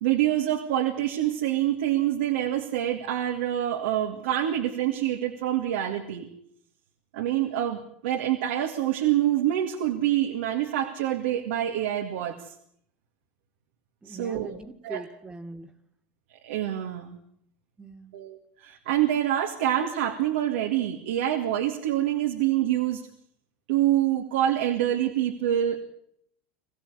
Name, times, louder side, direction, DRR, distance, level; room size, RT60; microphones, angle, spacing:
voice 1, 0.0-6.3 7.1-12.5 14.1-14.6 14.8-15.0 16.4-17.2 18.1-23.0 23.7-25.8, right 12 dB, 85° right, 3 dB, 2.1 m, -26 dB
voice 2, 14.0-15.7 17.8-18.1, right 2 dB, 15° right, 5 dB, 2.1 m, -41 dB
23.0 x 15.0 x 8.2 m, 0.71 s
supercardioid pair, 100°, 6 cm